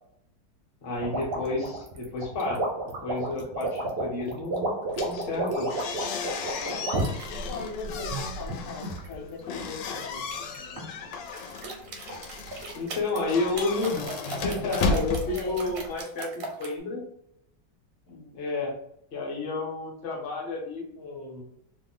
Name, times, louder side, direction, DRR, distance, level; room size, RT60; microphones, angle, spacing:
voice 1, 0.8-2.6 3.0-4.7 5.0-5.7 12.7-17.0 18.3-18.8 19.1-21.4, left 3 dB, 45° left, -1 dB, 0.9 m, -31 dB
sound 1, 1.0-7.3 7.9-9.2 10.3-10.9 11.3-16.7, right 2 dB, 60° right, 0.6 m, -32 dB
sound 2, 4.9-16.0, left 4 dB, 90° left, 1.3 m, -34 dB
voice 2, 7.3-10.2 15.3-15.6 18.1-18.4, left 4 dB, 60° left, 0 dB, 1.3 m, -39 dB
3.1 x 2.1 x 3.6 m, 0.75 s
omnidirectional pair, 1.9 m